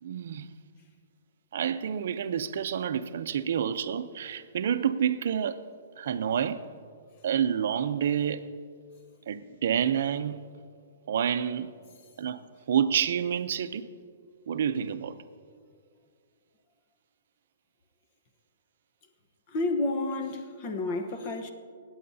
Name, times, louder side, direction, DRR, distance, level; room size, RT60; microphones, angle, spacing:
voice 1, 0.0-0.5 1.5-5.7 6.0-6.7 7.2-8.5 9.3-10.4 11.1-11.7 12.2-12.4 12.7-13.9 14.5-15.1, right 8 dB, 60° right, 0.6 m, -28 dB
voice 2, 19.5-21.5, left 2 dB, 30° left, 0.9 m, -30 dB
25.5 x 8.7 x 2.7 m
hypercardioid pair, 170°, 0 cm